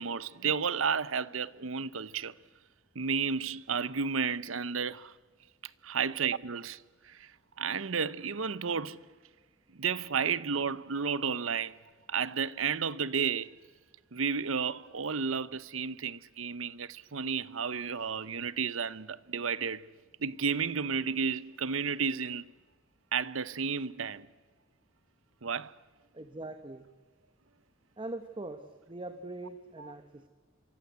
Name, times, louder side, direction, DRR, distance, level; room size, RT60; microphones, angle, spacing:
voice 1, 0.0-2.3 2.9-5.1 5.8-6.8 7.1-7.3 7.6-9.0 9.8-11.7 12.1-13.5 14.1-19.9 20.2-22.5 23.1-24.3 25.4-25.7 29.8-29.9, right 6 dB, 75° right, 0.8 m, -32 dB
voice 2, 26.1-26.9 28.0-30.3, right 2 dB, 25° right, 1.3 m, -42 dB
26.5 x 24.0 x 8.2 m
head